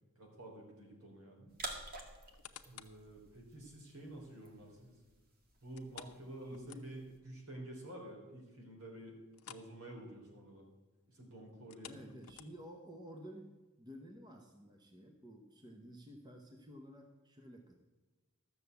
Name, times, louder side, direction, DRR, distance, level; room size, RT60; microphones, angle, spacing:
voice 1, 0.2-1.5 2.6-5.0 5.6-9.2 9.5-10.7 11.1-12.2, right 1 dB, 70° right, 0 dB, 3.8 m, -50 dB
sound 1, 1.5-7.2, right 2 dB, 40° right, 1.9 m, -51 dB
sound 2, 2.1-3.1 3.6-3.7 5.8-7.2 7.6-7.7 8.1-8.2 9.3-9.8 10.0-10.3 11.6-12.8 13.4-13.5, left 9 dB, 80° left, 0.8 m, -54 dB
voice 2, 6.5-6.9 11.8-17.8, equal, 20° right, 3 dB, 1.0 m, -52 dB
13.0 x 6.9 x 8.1 m, 1.3 s
head